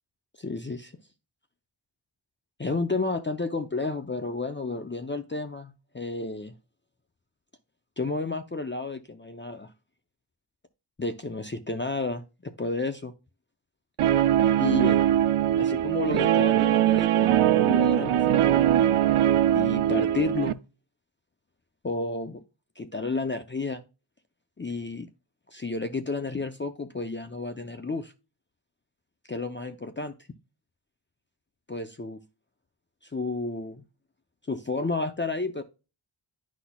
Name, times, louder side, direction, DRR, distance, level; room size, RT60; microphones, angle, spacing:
voice 1, 0.4-0.9 2.6-6.5 8.0-9.7 11.0-13.1 14.6-15.0 15.6-18.7 19.5-20.6 21.8-22.4 22.8-23.8 24.6-25.1 25.5-28.1 29.3-30.1 31.7-32.2 33.0-33.8 34.5-35.6, left 3 dB, 25° left, 8 dB, 0.6 m, -31 dB
Guitar, 14.0-20.5, right 11 dB, 80° right, 0.6 m, -21 dB
11.5 x 4.1 x 2.3 m, 0.30 s
wide cardioid pair, 75°, 50 cm